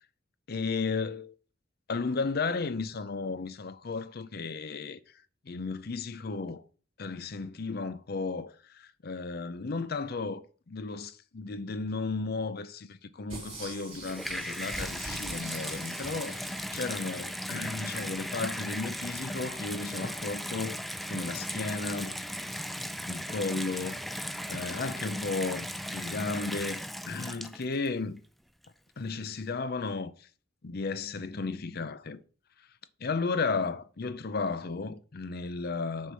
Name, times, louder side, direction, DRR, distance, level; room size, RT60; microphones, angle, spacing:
voice 1, 0.5-1.3 1.9-5.0 5.5-6.6 7.0-20.8 21.1-22.2 23.1-24.0 24.5-25.7 25.9-28.2 29.0-30.3 30.6-32.2 33.0-36.1, left 4 dB, 50° left, 0.5 m, -34 dB
sound 1, 13.3-17.7 18.2-18.3, right 2 dB, 30° right, 3.0 m, -44 dB
Water tap faucet / Bathtub (filling or washing), 13.8-27.9 28.6-28.7, equal, ahead, 0.3 m, -37 dB
6.7 x 4.5 x 6.3 m
head